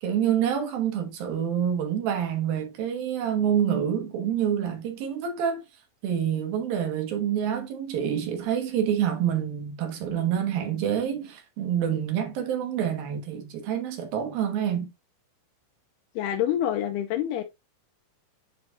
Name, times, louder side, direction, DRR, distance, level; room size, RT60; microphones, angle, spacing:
voice 1, 0.0-5.6 6.0-14.9, right 9 dB, 70° right, 2.9 m, -27 dB
voice 2, 16.2-17.4, left 11 dB, 85° left, 2.7 m, -26 dB
10.0 x 4.0 x 2.3 m
omnidirectional pair, 4.6 m